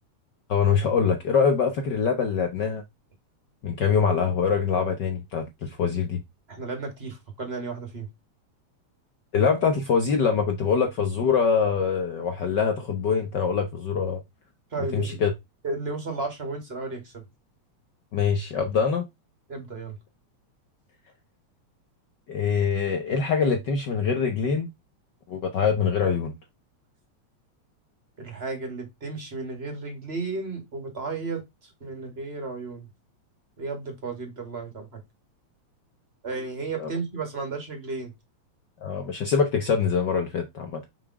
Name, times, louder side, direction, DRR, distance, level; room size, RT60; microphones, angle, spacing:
voice 1, 0.5-2.8 3.6-6.2 9.3-14.2 14.8-15.3 18.1-19.0 22.3-24.7 25.3-26.3 36.8-36.9 38.8-40.8, left 6 dB, 80° left, 0.9 m, -24 dB
voice 2, 6.5-8.1 14.7-15.2 15.6-17.2 19.5-20.0 28.2-31.4 31.8-32.9 33.6-35.0 36.2-38.1, right 3 dB, 20° right, 2.2 m, -33 dB
6.0 x 4.6 x 4.7 m
omnidirectional pair, 3.3 m